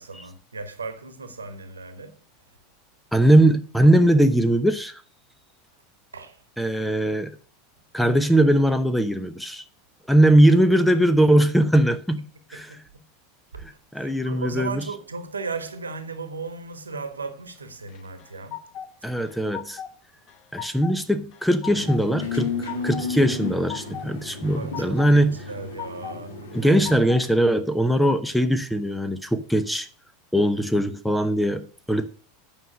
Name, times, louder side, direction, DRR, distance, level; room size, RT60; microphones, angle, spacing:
voice 1, 0.0-2.2 6.1-6.4 12.5-13.0 13.5-13.6 14.0-18.6 24.5-26.5, right 4 dB, 80° right, 1.4 m, -36 dB
voice 2, 3.1-5.0 6.6-7.3 7.9-9.6 10.1-12.2 12.5-12.7 13.9-14.8 19.0-19.8 20.5-22.5 22.8-25.4 26.5-29.9 30.3-32.1, right 1 dB, 5° left, 0.9 m, -20 dB
sound 1, 17.9-18.9 19.2-20.0 20.3-21.0 21.3-22.0 22.4-23.1 23.4-24.1 24.4-25.1 25.5-26.2 26.5-27.3, left 10 dB, 40° left, 1.0 m, -38 dB
sound 2, 21.6-27.1, left 4 dB, 70° left, 2.3 m, -33 dB
9.2 x 5.8 x 6.4 m
figure-of-eight pair, 80°, 0 cm